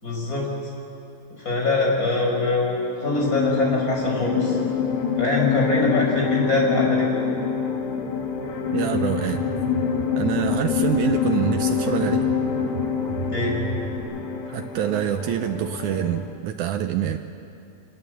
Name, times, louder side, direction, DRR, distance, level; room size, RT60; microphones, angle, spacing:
voice 1, 0.0-0.5 1.4-4.6 5.2-7.2 13.3-13.6, left 2 dB, 20° left, -1 dB, 5.2 m, -23 dB
sound 1, 3.0-16.4, left 7 dB, 55° left, 2.8 m, -25 dB
voice 2, 8.7-9.4 10.1-12.3 14.5-17.2, right 10 dB, 90° right, 7 dB, 1.7 m, -26 dB
sound 2, 8.9-14.0, right 3 dB, 50° right, 3.6 m, -35 dB
26.0 x 19.5 x 7.9 m, 2.6 s
omnidirectional pair, 4.4 m